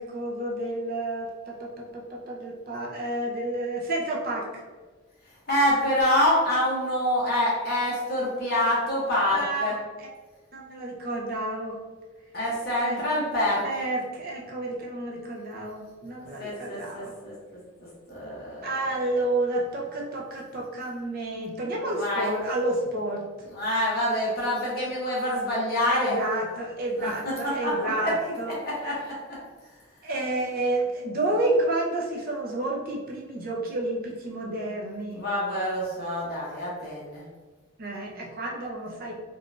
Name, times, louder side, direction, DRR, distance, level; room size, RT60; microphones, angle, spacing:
voice 1, 0.0-4.6 9.3-10.1 10.5-11.8 12.8-13.0 13.6-17.1 18.6-23.4 25.9-28.6 30.0-35.2 37.8-39.2, right 2 dB, 45° right, -2 dB, 0.6 m, -30 dB
voice 2, 5.5-9.7 12.3-13.6 16.4-17.3 18.1-18.7 21.9-22.3 23.5-26.2 27.0-27.1 27.6-28.1 28.6-29.2 35.1-37.2, left 1 dB, 50° left, -7 dB, 1.1 m, -26 dB
3.8 x 2.5 x 2.3 m, 1.4 s
head